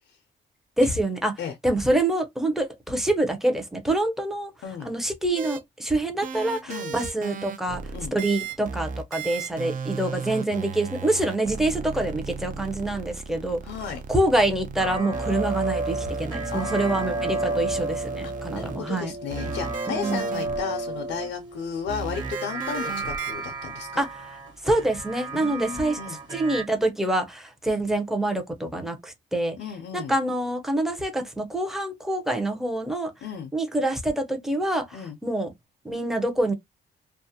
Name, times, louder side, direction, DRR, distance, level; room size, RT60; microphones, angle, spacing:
voice 1, 0.8-1.3 1.6-4.5 4.8-7.8 8.1-13.6 14.1-19.1 19.9-20.2 24.0-24.1 24.6-26.0 26.3-29.6 29.9-33.1 33.5-35.5 35.8-36.5, right 1 dB, ahead, 0.6 m, -26 dB
sound 1, 5.4-5.6 6.2-18.8 19.3-20.6 21.9-23.3, right 5 dB, 45° right, 0.5 m, -35 dB
voice 2, 6.7-7.0 7.9-8.2 13.6-14.0 16.5-17.6 18.2-24.0 25.3-26.2 29.6-30.2 33.2-33.5 34.9-35.2, left 7 dB, 70° left, 0.5 m, -34 dB
sound 2, 14.8-26.6, right 2 dB, 20° right, 1.4 m, -32 dB
2.4 x 2.1 x 2.7 m
cardioid pair, 90°, 20 cm